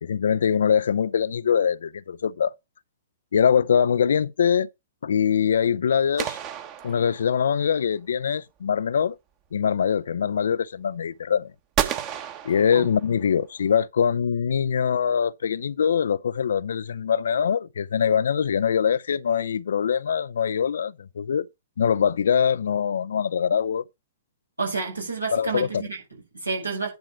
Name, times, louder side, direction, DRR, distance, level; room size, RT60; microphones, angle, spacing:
voice 1, 0.0-2.5 3.3-4.7 5.0-6.4 6.8-9.2 9.5-11.5 12.4-21.5 21.8-23.8 25.3-25.8, left 7 dB, 60° left, 0.5 m, -23 dB
sound 1, 6.2-7.6 11.8-13.3, right 9 dB, 30° right, 1.3 m, -31 dB
voice 2, 24.6-26.9, right 4 dB, 85° right, 6.3 m, -30 dB
10.5 x 4.8 x 5.8 m
figure-of-eight pair, 110°, 0 cm